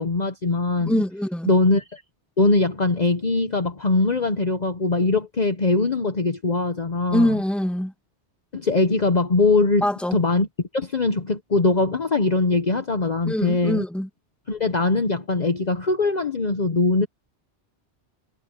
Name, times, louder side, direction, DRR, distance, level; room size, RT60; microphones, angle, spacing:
voice 1, 0.0-1.0 1.5-2.0 2.4-7.3 8.5-9.8 10.1-10.5 10.7-13.8 14.5-17.1, left 3 dB, 40° left, 1.0 m, -21 dB
voice 2, 0.8-1.5 7.1-7.9 9.8-10.2 13.2-14.1, equal, ahead, 1.7 m, -23 dB
omnidirectional pair, 1.2 m